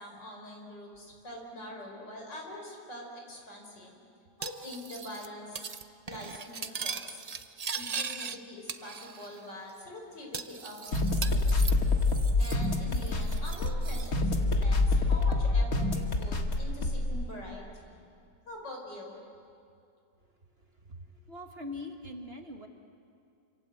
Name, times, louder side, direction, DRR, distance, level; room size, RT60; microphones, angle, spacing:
voice 1, 0.0-4.0 4.4-5.7 6.1-7.2 7.7-11.9 12.4-18.0 18.5-19.2, left 1 dB, 75° left, 1 dB, 5.6 m, -44 dB
Cutlery silverware, 4.4-5.3 5.5-5.8 6.1-8.4 8.7-9.4 9.7-9.8 10.3-12.7 12.9-14.1, right 5 dB, 70° right, 0.3 m, -39 dB
sound 1, 10.9-17.2, left 2 dB, 55° left, 2.2 m, -26 dB
voice 2, 20.9-22.7, left 2 dB, 35° right, 4 dB, 1.8 m, -42 dB
28.5 x 26.0 x 7.9 m, 2.5 s
omnidirectional pair, 1.9 m